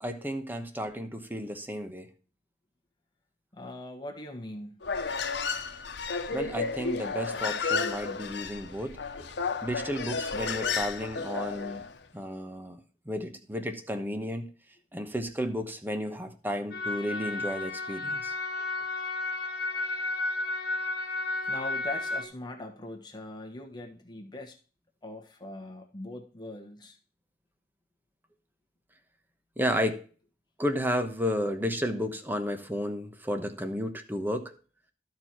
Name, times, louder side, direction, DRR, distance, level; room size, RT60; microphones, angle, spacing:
voice 1, 0.0-2.1 6.3-9.0 9.6-11.8 12.1-12.8 13.1-14.5 14.9-18.3 29.6-30.0 30.6-34.6, equal, 10° right, 1.0 m, -32 dB
voice 2, 3.5-4.9 21.5-24.6 25.0-27.0, left 2 dB, 25° left, 1.3 m, -41 dB
Human voice, 4.8-11.9, left 5 dB, 90° left, 0.9 m, -32 dB
sound 1, 16.7-22.2, left 2 dB, 65° left, 1.4 m, -32 dB
12.5 x 4.5 x 4.4 m
head